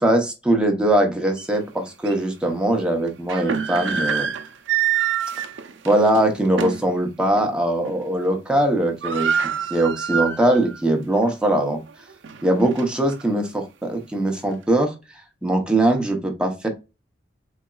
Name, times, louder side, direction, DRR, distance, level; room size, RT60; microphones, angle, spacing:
voice 1, 0.0-4.3 5.8-9.3 9.7-11.8 12.4-14.9 15.4-16.7, right 1 dB, 5° right, 1 dB, 0.8 m, -21 dB
sound 1, 1.4-1.5 2.0-2.2 3.1-6.9 7.3-7.5 7.8-8.3 8.5-8.6 8.8-10.8 11.2-11.3 11.9-13.2, right 8 dB, 80° right, 0.5 m, -26 dB
4.0 x 3.4 x 2.3 m, 0.27 s
head